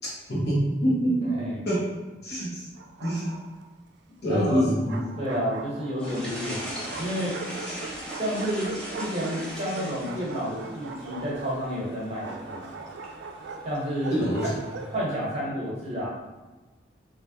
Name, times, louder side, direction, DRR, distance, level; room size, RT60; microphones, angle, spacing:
voice 1, 0.3-1.3 1.6-1.8 2.2-2.7 3.0-3.3 4.2-5.0 7.6-7.8 14.1-14.5, right 1 dB, 65° left, -6 dB, 1.1 m, -25 dB
Bark, 2.8-3.7 4.6-6.2 6.9-15.0, right 4 dB, 75° right, 0.3 m, -41 dB
voice 2, 4.2-4.6 5.2-7.3 8.2-12.7 13.6-14.5 14.9-16.1, equal, 35° right, -6 dB, 1.0 m, -30 dB
sound 1, 6.0-15.0, equal, 5° left, 0.5 m, -40 dB
3.4 x 2.5 x 2.7 m, 1.2 s
head